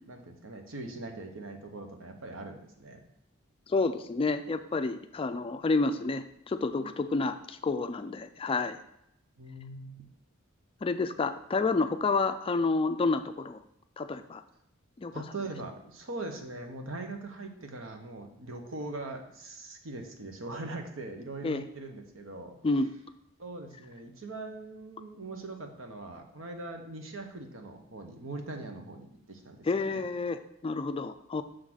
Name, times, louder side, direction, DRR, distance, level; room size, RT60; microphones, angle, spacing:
voice 1, 0.1-3.0 9.4-10.0 15.1-22.6 23.4-30.0, right 2 dB, 70° right, 4 dB, 1.1 m, -41 dB
voice 2, 3.7-8.8 10.8-13.6 14.0-14.4 15.0-15.1 21.4-21.6 22.6-22.9 29.6-31.4, left 3 dB, 25° left, 10 dB, 0.3 m, -29 dB
6.4 x 3.9 x 6.1 m, 0.77 s
head